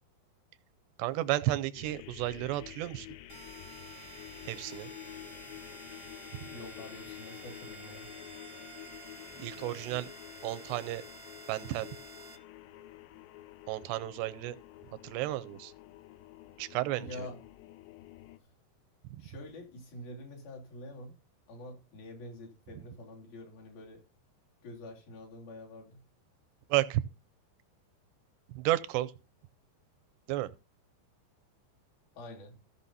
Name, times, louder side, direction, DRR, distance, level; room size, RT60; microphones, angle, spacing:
voice 1, 1.0-3.1 4.4-4.9 6.3-6.4 9.4-10.1 10.4-11.0 11.5-11.9 13.7-14.6 15.0-15.7 16.6-17.3 26.7-27.0 28.5-29.1 30.3-30.5, right 16 dB, 80° right, 2.7 m, -32 dB
sound 1, 1.7-18.4, left 16 dB, 85° left, 2.8 m, -49 dB
sound 2, 3.3-12.4, right 6 dB, 65° right, 1.8 m, -51 dB
voice 2, 6.5-8.1 17.0-17.4 18.3-18.5 19.2-21.1 21.5-24.0 24.6-26.0 32.1-32.6, left 1 dB, 55° left, 4.5 m, -46 dB
15.0 x 6.0 x 4.1 m
omnidirectional pair, 5.1 m